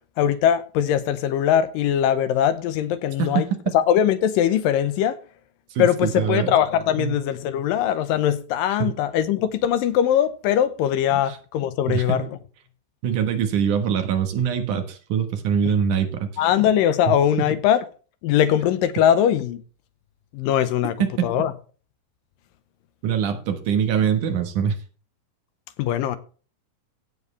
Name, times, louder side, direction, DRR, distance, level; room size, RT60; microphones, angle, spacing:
voice 1, 0.2-3.5 3.7-5.2 5.8-12.3 16.4-17.8 18.2-19.6 20.3-21.0 21.2-21.5 25.8-26.2, left 10 dB, 85° left, 2.6 m, -21 dB
voice 2, 5.7-6.5 7.0-7.2 8.8-9.0 11.1-11.4 11.9-12.3 13.0-16.6 17.4-17.5 23.0-24.8, right 7 dB, 70° right, 2.7 m, -24 dB
16.5 x 7.5 x 3.3 m
omnidirectional pair, 3.9 m